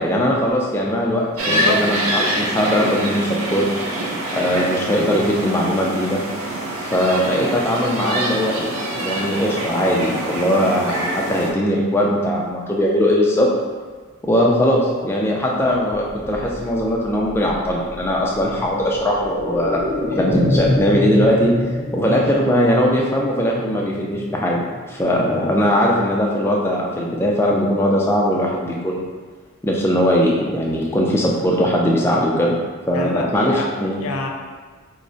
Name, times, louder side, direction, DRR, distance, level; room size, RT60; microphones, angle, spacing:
voice 1, 0.0-3.7 4.3-6.2 6.8-13.5 14.2-19.8 20.2-24.6 24.9-29.1 29.6-32.6 32.9-34.0, equal, 10° left, -3 dB, 0.3 m, -20 dB
voice 2, 1.4-1.8 32.9-34.3, left 3 dB, 80° left, 2 dB, 0.4 m, -27 dB
sound 1, 1.4-11.5, right 1 dB, 75° right, 0.5 m, -25 dB
sound 2, 15.8-25.4 25.7-25.8, left 1 dB, 30° right, 0.9 m, -27 dB
4.6 x 2.0 x 2.6 m, 1.4 s
head